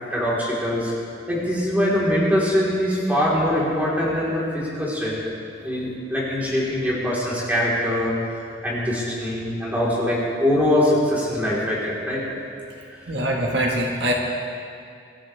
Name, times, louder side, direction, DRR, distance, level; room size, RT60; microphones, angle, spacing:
voice 1, 0.1-0.9 1.3-5.2 5.6-8.1 8.6-12.2 12.9-13.0, left 1 dB, 10° right, -7 dB, 3.8 m, -23 dB
voice 2, 13.1-14.1, right 1 dB, 70° right, -1 dB, 1.7 m, -23 dB
25.5 x 13.0 x 3.4 m, 2.4 s
head